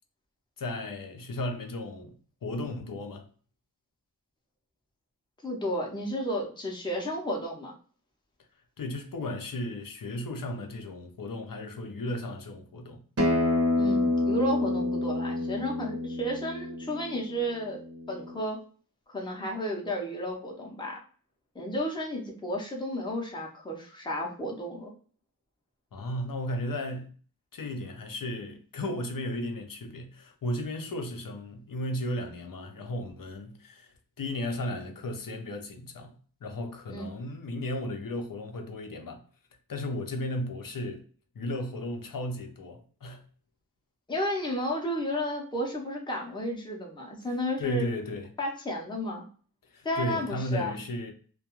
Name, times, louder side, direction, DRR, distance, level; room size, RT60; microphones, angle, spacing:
voice 1, 0.6-2.2 2.4-3.3 8.8-13.0 25.9-27.1 27.5-39.2 39.7-41.0 41.3-43.2 47.3-48.3 49.7-51.1, left 1 dB, 65° left, 0.6 m, -35 dB
voice 2, 5.4-7.7 13.8-17.8 18.1-18.6 19.1-21.0 21.5-24.9 36.9-37.1 44.1-47.9 48.4-49.2 49.8-50.8, equal, 15° left, 0.6 m, -32 dB
Acoustic guitar, 13.2-18.4, left 2 dB, 45° right, 0.7 m, -28 dB
2.3 x 2.2 x 2.9 m
wide cardioid pair, 75°, 36 cm